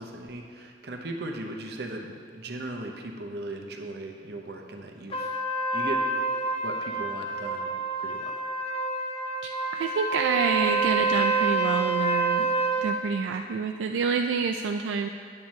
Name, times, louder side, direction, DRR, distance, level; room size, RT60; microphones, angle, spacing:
voice 1, 0.0-5.4 5.7-6.0 6.6-8.4, right 2 dB, 60° right, 3 dB, 0.8 m, -38 dB
Trumpet, 5.1-12.9, right 3 dB, 30° left, 0.6 m, -27 dB
voice 2, 9.4-12.5 12.8-15.1, right 5 dB, 80° right, 5 dB, 0.3 m, -28 dB
8.8 x 8.6 x 3.2 m, 2.2 s
head